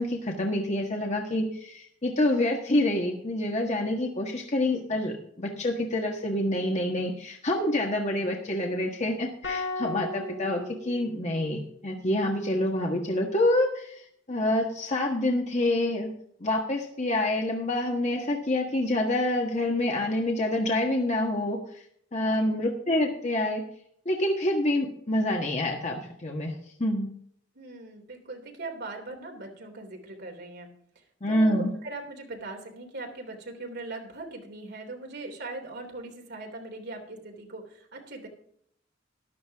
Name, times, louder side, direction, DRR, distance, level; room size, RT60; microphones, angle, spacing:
voice 1, 0.0-14.0 14.3-16.1 16.4-21.8 22.1-23.6 24.0-26.5 26.8-27.1 31.2-31.7, left 1 dB, 35° left, 1 dB, 1.5 m, -27 dB
sound 1, 9.4-11.8, left 3 dB, 85° left, 5.1 m, -36 dB
voice 2, 22.2-22.5 27.5-30.7 31.3-38.3, right 2 dB, 60° right, 1 dB, 3.4 m, -40 dB
13.5 x 11.5 x 3.6 m, 0.66 s
head